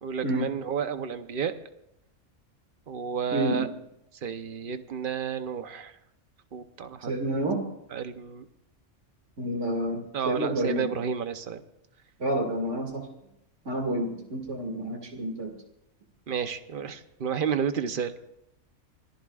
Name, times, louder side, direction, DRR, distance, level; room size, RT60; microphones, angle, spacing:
voice 1, 0.0-1.5 2.9-3.7 4.2-5.9 6.5-7.1 7.9-8.4 10.1-11.6 16.3-18.1, right 7 dB, 50° right, 9 dB, 1.0 m, -31 dB
voice 2, 3.3-3.7 7.0-7.6 9.4-10.9 12.2-13.0 13.7-15.6, right 1 dB, 75° right, 1 dB, 2.6 m, -29 dB
25.5 x 18.5 x 2.5 m, 0.81 s
omnidirectional pair, 1.3 m